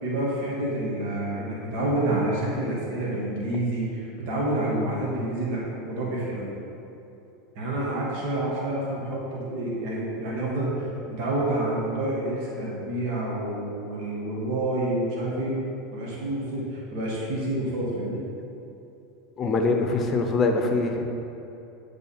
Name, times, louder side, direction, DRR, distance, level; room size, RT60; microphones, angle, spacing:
voice 1, 0.0-6.5 7.5-18.2, right 1 dB, 65° right, -5 dB, 1.4 m, -28 dB
voice 2, 19.4-21.0, left 3 dB, 35° left, 4 dB, 0.7 m, -23 dB
7.2 x 3.4 x 4.2 m, 2.9 s
hypercardioid pair, 100°, 0 cm